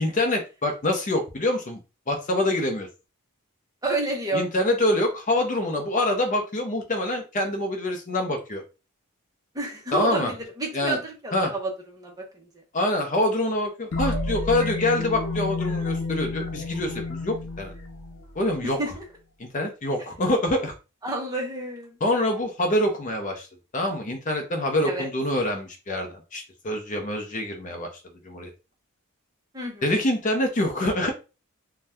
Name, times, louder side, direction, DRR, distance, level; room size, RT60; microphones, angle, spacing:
voice 1, 0.0-1.8 2.1-2.9 4.3-8.6 9.9-10.3 10.7-11.0 11.3-11.5 12.7-17.7 18.4-18.8 19.4-20.7 22.0-23.5 23.7-27.9 28.2-28.5 29.8-31.1, left 1 dB, 35° left, 4 dB, 0.5 m, -25 dB
voice 2, 3.8-4.5 9.5-11.7 12.0-12.5 18.6-19.0 21.0-22.0 24.8-25.1 29.5-29.8, right 2 dB, 15° right, 0 dB, 0.7 m, -29 dB
sound 1, 13.9-18.6, left 3 dB, 90° left, 0.6 m, -30 dB
2.7 x 2.2 x 3.3 m, 0.30 s
head